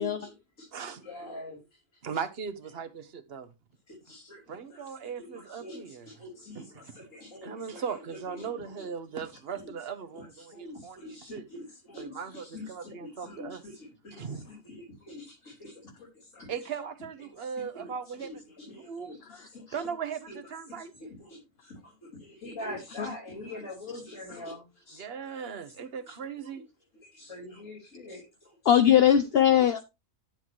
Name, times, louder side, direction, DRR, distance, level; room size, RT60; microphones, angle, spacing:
voice 1, 0.0-0.7 1.0-1.8 3.9-4.4 4.7-8.9 9.5-9.7 10.1-16.5 17.2-19.9 20.3-20.5 20.8-25.4 26.4-26.6 27.1-28.7 29.6-29.8, left 1 dB, 70° left, 4.1 m, -45 dB
voice 2, 0.7-1.0 2.0-3.5 4.5-6.1 6.5-7.1 7.4-11.4 12.0-13.6 14.2-14.4 16.5-18.4 18.8-19.1 19.7-20.9 25.0-26.7, right 6 dB, 50° right, 1.2 m, -38 dB
voice 3, 28.7-29.8, left 10 dB, 55° left, 0.8 m, -20 dB
10.5 x 7.8 x 3.0 m
omnidirectional pair, 1.4 m